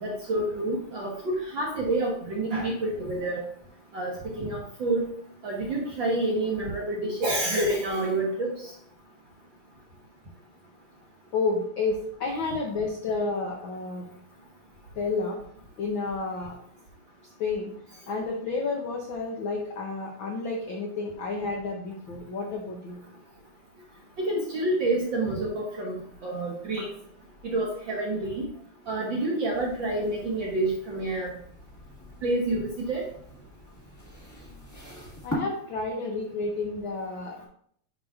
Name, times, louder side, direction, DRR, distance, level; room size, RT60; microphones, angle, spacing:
voice 1, 0.0-3.4 3.9-5.0 5.4-8.7 24.2-25.9 26.2-26.9 27.4-28.5 28.9-31.3 32.2-33.0, right 2 dB, 60° right, -3 dB, 1.3 m, -28 dB
voice 2, 11.3-14.1 15.0-15.4 15.8-16.6 17.4-17.7 18.1-23.0 35.2-37.5, left 3 dB, 80° left, -1 dB, 1.1 m, -30 dB
sound 1, 29.5-35.4, equal, 10° left, 0.8 m, -42 dB
10.5 x 3.9 x 2.5 m, 0.64 s
omnidirectional pair, 3.3 m